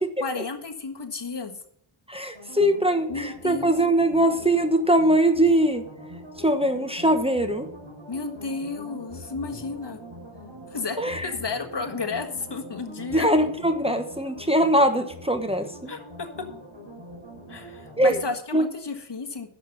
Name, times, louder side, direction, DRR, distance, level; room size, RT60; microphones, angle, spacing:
voice 1, 0.0-1.5 3.1-3.7 8.1-10.0 10.7-11.0 11.2-13.3 15.9-16.3 17.5-19.5, left 4 dB, 60° left, 6 dB, 1.5 m, -32 dB
voice 2, 2.1-5.9 6.4-7.7 11.0-11.3 13.1-15.7 18.0-18.2 18.5-18.6, right 1 dB, 10° right, 7 dB, 1.0 m, -21 dB
sound 1, 2.3-18.3, equal, 70° right, 5.3 m, -43 dB
11.0 x 6.7 x 5.9 m, 0.65 s
wide cardioid pair, 75°, 47 cm